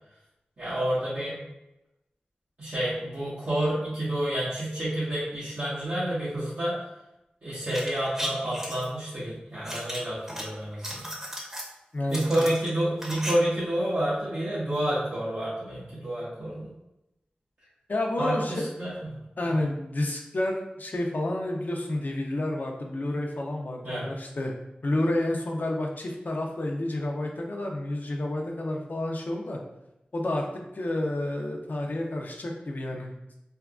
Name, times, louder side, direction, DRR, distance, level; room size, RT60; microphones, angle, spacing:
voice 1, 0.6-1.4 2.6-6.8 7.4-11.1 12.1-16.7 18.2-18.9 23.8-24.1, right 1 dB, 65° right, -12 dB, 1.1 m, -29 dB
sound 1, 7.6-8.9 9.7-10.4 10.7-11.7 12.1-13.3 13.6-13.7, equal, 15° right, 0.8 m, -35 dB
voice 2, 11.9-12.5 17.9-18.7 19.4-24.5 24.8-29.6 30.1-30.5 30.7-33.1, left 1 dB, 60° left, 1 dB, 0.5 m, -30 dB
3.4 x 2.2 x 2.4 m, 0.90 s
cardioid pair, 45°, 3 cm